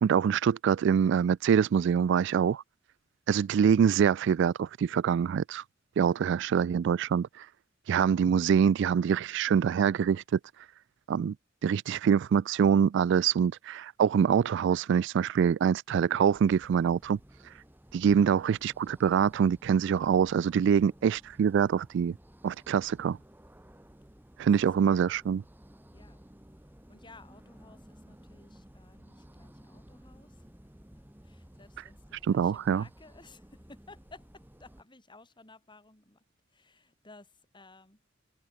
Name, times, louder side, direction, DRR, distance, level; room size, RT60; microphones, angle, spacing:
voice 1, 0.0-2.6 3.3-5.6 6.0-7.5 7.9-10.4 11.1-11.3 11.6-17.2 17.9-22.1 22.4-23.2 24.4-25.4 32.3-32.8, right 7 dB, 65° right, 0.3 m, -25 dB
sound 1, 16.2-34.8, equal, 10° right, 1.3 m, -55 dB
voice 2, 25.9-26.3 26.9-30.4 31.2-36.2 36.5-38.0, left 3 dB, 25° left, 3.7 m, -56 dB
head